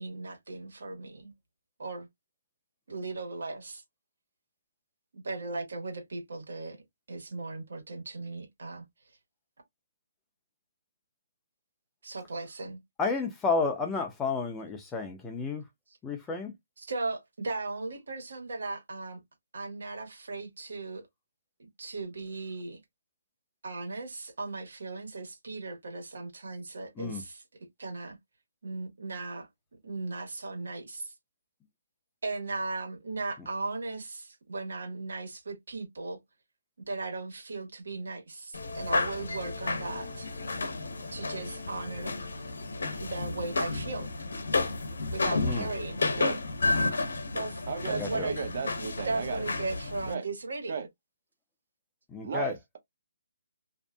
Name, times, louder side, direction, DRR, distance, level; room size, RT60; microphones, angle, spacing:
voice 1, 0.0-1.3 1.8-2.1 2.9-3.8 5.1-6.8 7.1-8.8 12.0-12.8 16.8-19.2 19.5-21.0 21.6-22.8 23.6-27.4 27.8-28.2 28.6-29.5 29.8-31.1 32.2-36.2 36.9-40.3 41.1-42.1 43.0-44.1 45.1-46.0 47.3-48.4 49.0-50.8, right 3 dB, 80° right, 1.3 m, -37 dB
voice 2, 13.0-15.6 16.0-16.5 27.0-27.2 45.4-45.7 48.0-48.3 52.1-52.5, left 4 dB, 10° left, 0.5 m, -31 dB
sound 1, 38.5-50.1, left 3 dB, 85° left, 0.7 m, -32 dB
voice 3, 47.7-49.4 50.1-50.3 50.7-50.9 52.2-52.8, right 6 dB, 50° right, 0.8 m, -35 dB
2.6 x 2.5 x 2.2 m
hypercardioid pair, 160°, 0 cm